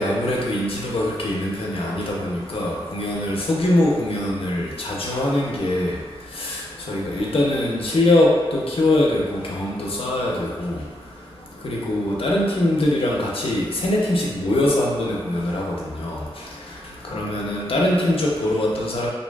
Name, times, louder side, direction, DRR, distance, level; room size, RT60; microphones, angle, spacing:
voice 1, 0.0-5.9 6.4-6.6 6.9-10.7 11.6-15.6 16.0-16.2 17.1-19.1, left 1 dB, 75° left, -3 dB, 0.5 m, -22 dB
2.6 x 2.4 x 2.2 m, 1.5 s
wide cardioid pair, 60°, 10 cm